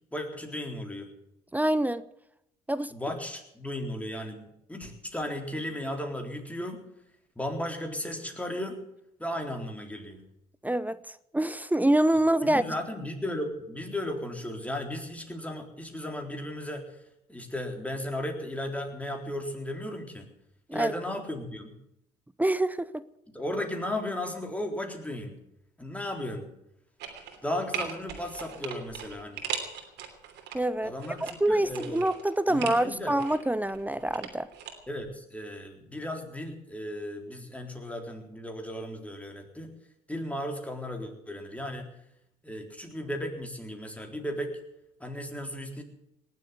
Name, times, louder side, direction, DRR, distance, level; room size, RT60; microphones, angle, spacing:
voice 1, 0.1-1.1 2.9-6.9 7.4-8.8 9.2-10.2 12.4-16.9 17.3-20.3 20.7-21.7 23.3-25.4 25.8-26.5 27.4-29.4 30.8-32.0 32.5-33.2 34.9-39.7 40.1-41.9 42.4-44.6 45.0-45.8, left 1 dB, 5° left, 3 dB, 3.9 m, -35 dB
voice 2, 1.5-2.0 2.7-2.9 10.6-11.0 11.3-12.6 20.7-20.9 22.4-23.0 30.5-30.9 31.4-34.5, right 1 dB, 10° right, 17 dB, 0.7 m, -25 dB
sound 1, 27.0-27.4 27.7-30.6 31.0-32.8 33.2-34.7 35.0-35.1, right 8 dB, 75° right, 3.1 m, -38 dB
19.0 x 7.8 x 9.6 m, 0.80 s
supercardioid pair, 65°, 18 cm